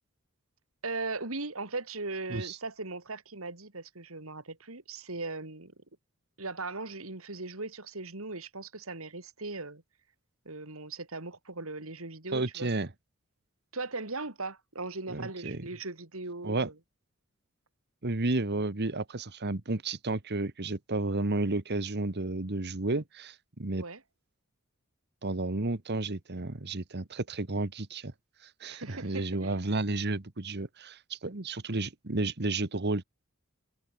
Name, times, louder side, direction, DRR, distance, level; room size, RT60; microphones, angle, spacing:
voice 1, 0.8-5.7 6.4-9.8 10.4-12.7 13.7-16.7 23.8-24.0 28.7-29.6, right 3 dB, 70° right, 3.2 m, -38 dB
voice 2, 12.3-12.9 15.1-15.6 16.4-16.7 18.0-23.8 25.2-28.1 28.6-33.0, right 2 dB, 50° right, 1.4 m, -32 dB
head